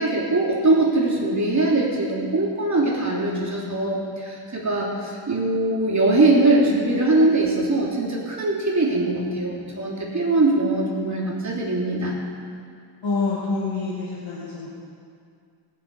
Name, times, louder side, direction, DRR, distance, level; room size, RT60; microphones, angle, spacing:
voice 1, 0.0-12.2, right 2 dB, 40° right, -4 dB, 3.1 m, -21 dB
voice 2, 13.0-14.7, left 3 dB, 80° left, -8 dB, 2.4 m, -26 dB
20.0 x 7.0 x 5.4 m, 2.3 s
wide cardioid pair, 120°, 44 cm